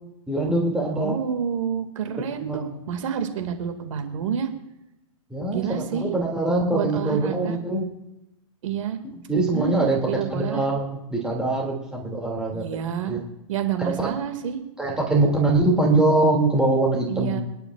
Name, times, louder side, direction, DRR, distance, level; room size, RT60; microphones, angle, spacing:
voice 1, 0.3-1.2 2.4-2.7 5.3-7.9 9.3-12.6 13.1-13.2 13.8-14.1 14.8-17.4, right 2 dB, 5° right, -2 dB, 2.4 m, -23 dB
voice 2, 0.9-4.5 5.5-6.1 6.7-7.6 8.6-9.0 9.5-10.7 12.5-13.2 13.5-14.6 17.1-17.4, right 8 dB, 70° right, 6 dB, 2.1 m, -28 dB
27.0 x 10.5 x 2.4 m, 0.91 s
hypercardioid pair, 145°, 17 cm